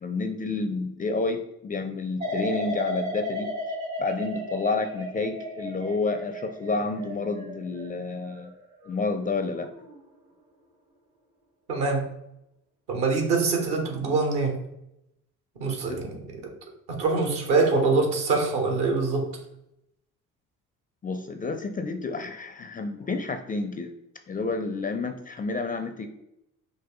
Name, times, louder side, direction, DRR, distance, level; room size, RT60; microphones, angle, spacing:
voice 1, 0.0-3.5 4.0-8.5 8.9-9.7 15.9-16.0 21.0-23.9 24.3-26.1, left 3 dB, 20° left, 7 dB, 0.4 m, -30 dB
sound 1, 2.2-9.1 9.5-10.0, left 1 dB, 85° right, 1.6 m, -34 dB
voice 2, 11.7-12.1 12.9-14.6 15.6-16.2 16.9-19.3, right 3 dB, 65° right, 2 dB, 1.3 m, -24 dB
5.3 x 2.6 x 3.7 m, 0.81 s
figure-of-eight pair, 50°, 43 cm